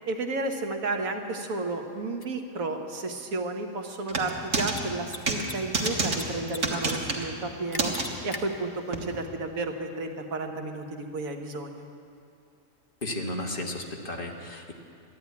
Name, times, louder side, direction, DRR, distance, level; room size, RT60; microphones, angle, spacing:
voice 1, 0.1-7.9 8.2-11.9, right 2 dB, 85° right, 4 dB, 1.6 m, -32 dB
Mechanisms, 2.2-2.3 4.6-4.8 5.1-5.2 5.4-6.2 6.5-6.9 7.2-7.3 7.7-8.4, left 2 dB, 25° left, 0.6 m, -38 dB
sound 1, 4.1-4.7 5.3-5.4 5.7-6.2 6.6-7.3 7.8-8.0 8.9-9.0, right 3 dB, 60° right, 1.9 m, -27 dB
voice 2, 13.0-14.7, left 1 dB, 40° left, 1 dB, 1.4 m, -34 dB
13.0 x 10.5 x 9.4 m, 2.4 s
omnidirectional pair, 1.4 m